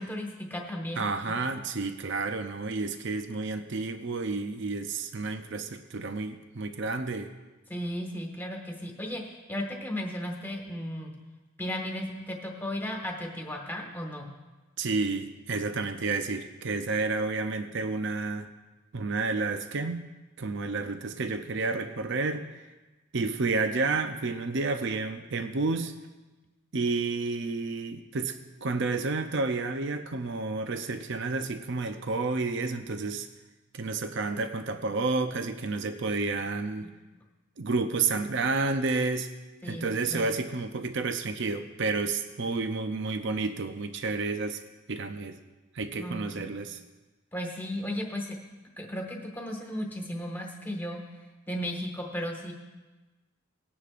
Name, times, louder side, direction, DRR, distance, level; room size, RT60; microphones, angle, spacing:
voice 1, 0.0-1.3 7.7-11.1 11.6-14.3 39.6-40.3 46.0-46.4 47.3-48.4 48.8-51.0 51.5-52.5, equal, 10° left, 0 dB, 1.6 m, -35 dB
voice 2, 1.0-7.3 14.8-18.5 18.9-20.1 20.4-22.6 23.1-25.9 26.7-33.3 33.7-36.9 37.6-39.3 39.6-44.6 44.9-45.4 45.7-46.8, right 3 dB, 60° right, 8 dB, 0.6 m, -30 dB
19.0 x 9.9 x 2.5 m, 1.2 s
head